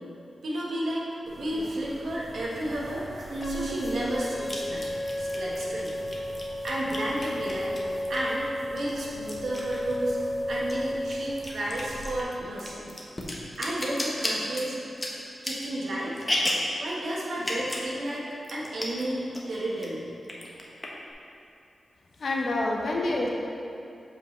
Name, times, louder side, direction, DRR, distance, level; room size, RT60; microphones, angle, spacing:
voice 1, 0.4-3.0 3.4-4.9 5.2-5.9 6.6-7.7 8.1-10.2 10.5-12.8 13.6-14.8 15.4-16.3 16.8-20.0, right 1 dB, 75° right, -6 dB, 1.4 m, -32 dB
sound 1, 1.3-12.2, right 1 dB, 55° right, 1.4 m, -41 dB
sound 2, 2.7-2.8 4.5-8.4 8.8-10.3 10.6-16.7 17.4-17.9 18.2-18.3 18.4-19.0 19.3-19.9 20.2-21.1, left 1 dB, 20° left, 1.0 m, -33 dB
sound 3, 3.4-11.4, left 1 dB, 45° left, 0.3 m, -33 dB
voice 2, 22.2-23.3, left 2 dB, 65° left, -1 dB, 0.9 m, -27 dB
7.7 x 4.6 x 3.3 m, 2.6 s
cardioid pair, 65°, 0 cm